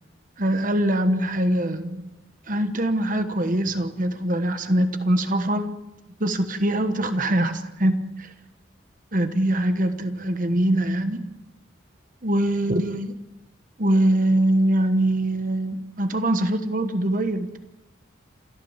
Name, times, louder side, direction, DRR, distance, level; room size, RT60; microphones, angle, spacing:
voice 1, 0.4-2.1 2.5-5.7 6.2-8.3 9.1-11.3 12.2-13.2 13.8-17.6, right 1 dB, 40° right, 9 dB, 1.2 m, -23 dB
28.0 x 13.5 x 7.3 m, 1.0 s
head